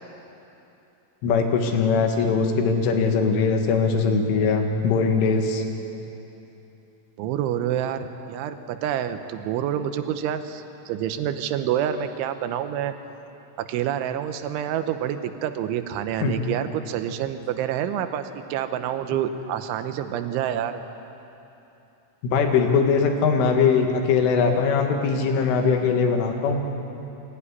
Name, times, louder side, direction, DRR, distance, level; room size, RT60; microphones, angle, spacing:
voice 1, 1.2-5.6 16.2-16.4 19.1-19.2 22.2-26.6, left 5 dB, 75° left, 4 dB, 4.1 m, -21 dB
voice 2, 7.2-12.9 13.6-20.8, right 10 dB, 75° right, 9 dB, 3.1 m, -27 dB
23.0 x 16.5 x 9.9 m, 2.9 s
omnidirectional pair, 5.9 m